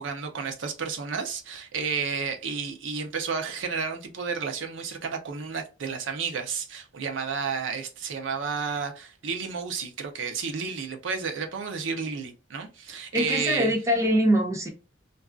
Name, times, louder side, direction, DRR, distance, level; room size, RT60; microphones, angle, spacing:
voice 1, 0.0-13.7, right 5 dB, 80° right, 0.6 m, -31 dB
voice 2, 13.1-14.7, equal, 15° right, 0.6 m, -23 dB
2.5 x 2.3 x 2.3 m
head